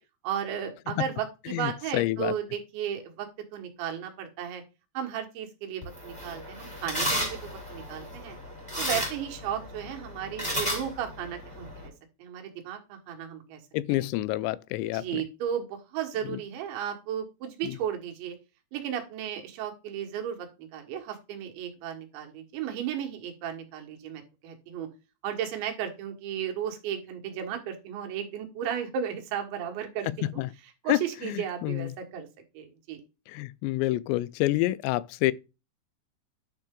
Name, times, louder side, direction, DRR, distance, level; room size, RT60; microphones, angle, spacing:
voice 1, 0.2-4.6 5.0-8.4 8.8-11.9 12.2-13.6 13.9-14.1 14.9-18.4 18.7-24.9 25.2-30.4 30.8-32.3 32.6-33.0, right 9 dB, 90° right, 3.9 m, -34 dB
voice 2, 1.5-2.3 13.7-15.2 16.3-16.4 17.6-17.7 30.1-30.5 30.9-31.9 33.3-35.3, left 17 dB, 85° left, 2.7 m, -28 dB
sound 1, 5.8-11.9, equal, ahead, 3.4 m, -34 dB
10.5 x 5.5 x 3.8 m
omnidirectional pair, 5.1 m